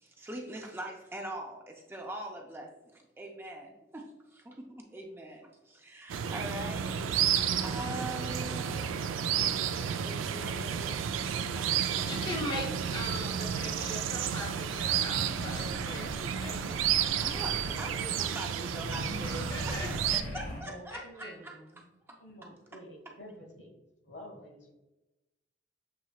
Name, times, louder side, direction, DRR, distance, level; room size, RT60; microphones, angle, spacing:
voice 1, 0.0-11.8 17.2-23.1, right 1 dB, 10° right, 1 dB, 0.4 m, -43 dB
sound 1, 6.1-20.2, right 8 dB, 85° right, 0.3 m, -31 dB
voice 2, 11.9-16.7 19.2-20.2 20.9-21.3, left 1 dB, 25° left, 0 dB, 0.6 m, -40 dB
sound 2, 14.8-18.0 18.7-20.6, equal, 85° left, 1.4 m, -41 dB
voice 3, 20.6-21.4 22.2-23.7 24.0-24.6, equal, 65° left, 0 dB, 1.3 m, -49 dB
7.0 x 3.0 x 2.3 m, 1.0 s
head